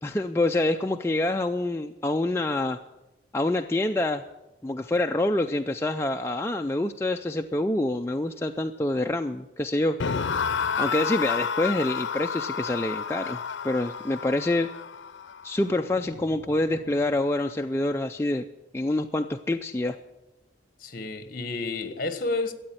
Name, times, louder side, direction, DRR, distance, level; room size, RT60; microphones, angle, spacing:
voice 1, 0.0-2.8 3.3-4.2 4.6-10.0 10.8-14.7 15.4-18.4 18.7-20.0, left 2 dB, 15° left, 0.4 m, -26 dB
sound 1, 10.0-17.1, left 6 dB, 80° left, 0.6 m, -31 dB
voice 2, 20.8-22.5, left 3 dB, 50° left, 1.4 m, -30 dB
13.5 x 8.7 x 9.0 m
head